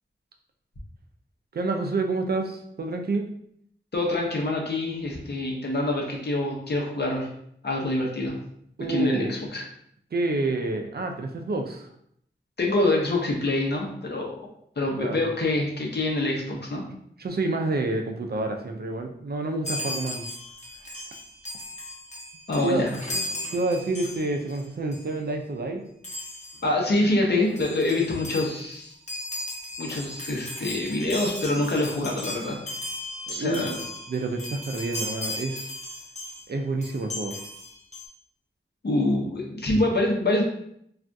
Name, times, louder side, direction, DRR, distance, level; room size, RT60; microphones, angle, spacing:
voice 1, 1.5-3.3 8.8-9.4 10.1-11.9 15.0-15.3 17.2-20.3 22.6-22.9 23.5-25.9 33.3-33.8 34.1-35.7 36.5-37.4, right 2 dB, 55° right, 4 dB, 0.4 m, -28 dB
voice 2, 3.9-7.3 7.6-8.3 8.9-9.6 12.6-14.4 14.8-16.8 22.5-22.9 26.6-28.9 29.8-32.6 33.3-33.8 38.8-40.4, left 2 dB, 60° left, -1 dB, 0.8 m, -25 dB
Chime, 19.6-24.6 24.9-25.1 26.0-26.6 27.2-27.3 27.5-36.5 36.8-38.1, left 1 dB, 35° left, 0.8 m, -36 dB
3.4 x 2.4 x 2.6 m, 0.71 s
wide cardioid pair, 90°, 19 cm